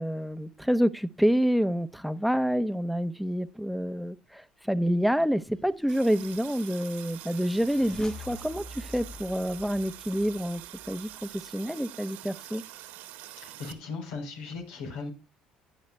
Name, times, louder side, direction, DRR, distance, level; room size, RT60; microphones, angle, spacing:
voice 1, 0.0-10.6 10.9-12.6, equal, ahead, 1.1 m, -28 dB
sound 1, 5.9-11.5, left 3 dB, 25° left, 1.5 m, -47 dB
Water tap faucet, 5.9-13.7, right 14 dB, 80° right, 1.9 m, -45 dB
voice 2, 13.4-15.1, left 4 dB, 80° left, 4.4 m, -37 dB
16.5 x 9.5 x 2.2 m
hypercardioid pair, 65°, 3 cm